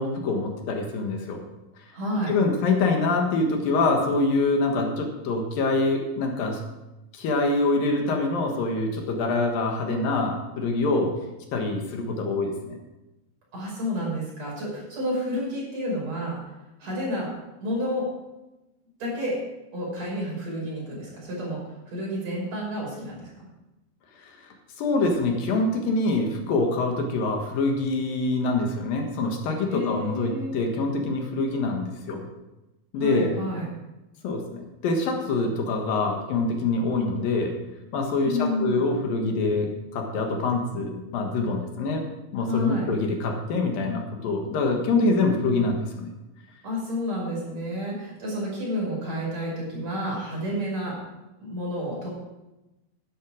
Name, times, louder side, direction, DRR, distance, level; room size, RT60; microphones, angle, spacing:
voice 1, 0.0-1.4 2.3-6.6 7.1-11.1 11.5-12.8 24.8-32.2 32.9-33.3 34.2-37.5 37.9-42.0 42.3-46.1, left 3 dB, 70° left, 3 dB, 3.2 m, -25 dB
voice 2, 1.9-2.3 13.5-16.4 16.8-17.3 17.6-18.1 19.0-19.3 19.7-21.6 21.9-23.3 29.7-30.5 33.0-33.7 38.2-38.9 42.4-42.9 46.6-50.9 51.4-52.1, equal, 45° right, -4 dB, 6.7 m, -30 dB
12.0 x 11.0 x 5.0 m, 1.0 s
omnidirectional pair, 4.2 m